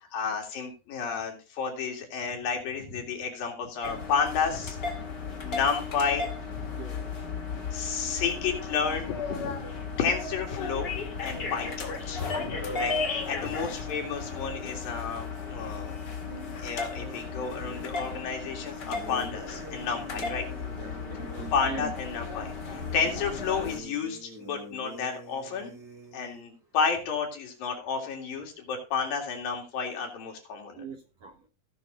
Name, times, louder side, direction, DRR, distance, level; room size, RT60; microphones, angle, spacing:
voice 1, 0.1-4.8 5.4-6.6 7.7-9.5 10.0-10.9 11.2-16.0 16.6-20.5 21.5-25.7 26.1-30.8, left 6 dB, 70° left, 2 dB, 3.9 m, -31 dB
sound 1, 3.8-23.8, left 4 dB, 35° left, 2.0 m, -35 dB
voice 2, 6.8-7.1 12.7-13.0 20.2-20.4 20.8-21.9 22.2-22.3 30.7-31.5, right 5 dB, 60° right, 4 dB, 1.9 m, -42 dB
sound 2, 16.9-17.9 18.9-21.9 22.7-26.4, equal, 30° right, 4.5 m, -45 dB
17.5 x 6.2 x 3.9 m, 0.33 s
omnidirectional pair, 4.3 m